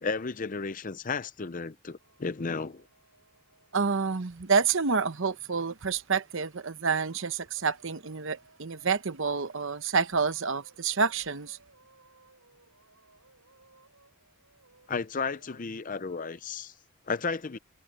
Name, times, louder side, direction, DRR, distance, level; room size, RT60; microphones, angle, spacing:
voice 1, 0.0-2.9 14.9-16.7 17.1-17.6, left 4 dB, 35° left, 0.5 m, -33 dB
sound 1, 2.0-4.0 5.6-5.7 7.1-16.9, right 3 dB, 85° right, 6.7 m, -62 dB
voice 2, 3.7-11.6, right 5 dB, 60° right, 0.9 m, -28 dB
head